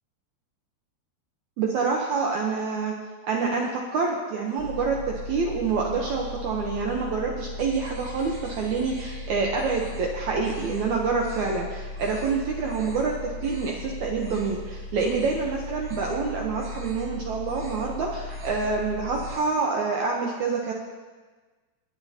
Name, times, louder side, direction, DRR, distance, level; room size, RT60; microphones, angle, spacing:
voice 1, 1.6-2.9 3.2-20.7, right 4 dB, 70° right, -1 dB, 1.8 m, -27 dB
sound 1, 4.6-19.3, left 2 dB, 35° left, 2.2 m, -37 dB
sound 2, 7.6-9.3 9.6-10.1 10.4-10.8 11.2-11.6 11.9-12.3 12.6-13.1 13.4-13.8 14.2-14.6 14.9-15.5 15.8-16.2 16.5-17.1 17.4-17.9 18.2-18.7 19.0-19.6, right 2 dB, 55° right, 3.7 m, -47 dB
20.5 x 9.1 x 2.8 m, 1.3 s
omnidirectional pair, 4.4 m